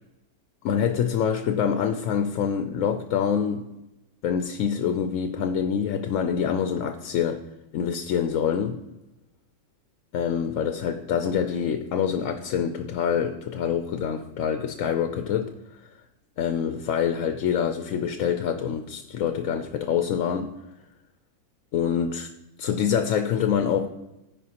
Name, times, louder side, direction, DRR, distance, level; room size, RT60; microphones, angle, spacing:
voice 1, 0.6-3.7 4.2-7.4 7.7-8.8 10.1-15.9 16.4-20.6 21.7-22.3 22.6-23.9, left 8 dB, 70° left, 7 dB, 0.9 m, -26 dB
14.5 x 5.1 x 2.9 m, 0.96 s
omnidirectional pair, 1.5 m